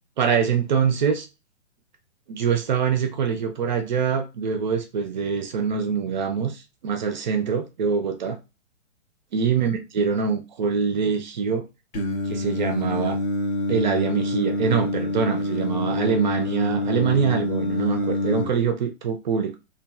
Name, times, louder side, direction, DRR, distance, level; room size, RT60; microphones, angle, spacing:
voice 1, 0.2-1.3 2.3-8.4 9.3-11.6 12.3-13.2 13.7-19.6, right 6 dB, 40° right, 0.5 m, -24 dB
Singing, 11.9-18.5, left 2 dB, 15° left, 0.4 m, -26 dB
2.9 x 2.5 x 2.3 m
figure-of-eight pair, 125°, 37 cm